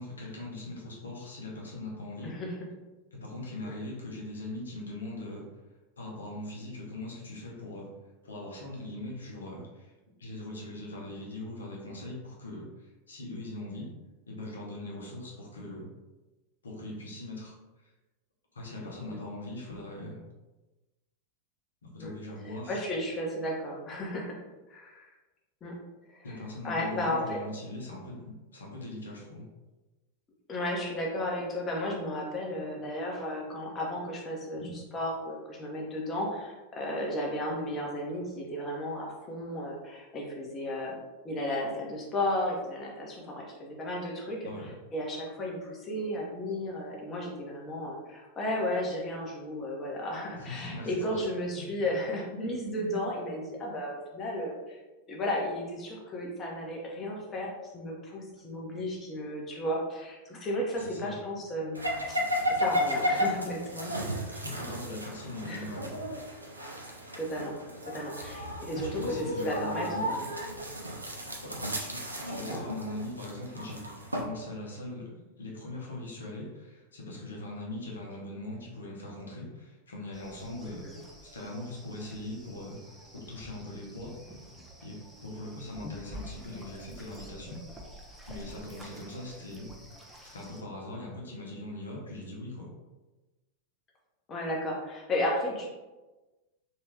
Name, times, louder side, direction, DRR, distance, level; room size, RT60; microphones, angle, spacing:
voice 1, 0.0-2.4 3.1-5.5 6.0-7.9 8.2-9.9 10.2-13.9 14.3-15.9 16.6-17.6 17.8-17.9 18.5-20.2 21.8-22.8 26.2-29.5 44.4-44.8 50.3-51.7 60.8-61.1 64.4-66.0 68.7-70.2 71.4-84.2 84.8-87.6 88.3-89.7 90.3-92.7, left 1 dB, 70° left, -2 dB, 0.9 m, -41 dB
voice 2, 2.2-2.6 3.6-3.8 19.1-19.2 22.0-22.1 22.7-24.4 24.7-25.1 25.6-25.8 26.1-26.2 26.6-27.4 30.5-41.0 41.2-44.5 44.9-54.8 55.1-64.4 65.4-65.7 67.2-67.6 67.9-70.2 72.5-72.6 80.6-81.0 94.3-95.7, left 1 dB, 25° left, -1 dB, 0.9 m, -34 dB
sound 1, 61.7-74.2, equal, 80° right, 0.5 m, -34 dB
sound 2, 80.1-90.6, equal, ahead, 0.6 m, -48 dB
3.2 x 2.8 x 3.3 m, 1.1 s
figure-of-eight pair, 90°, 0 cm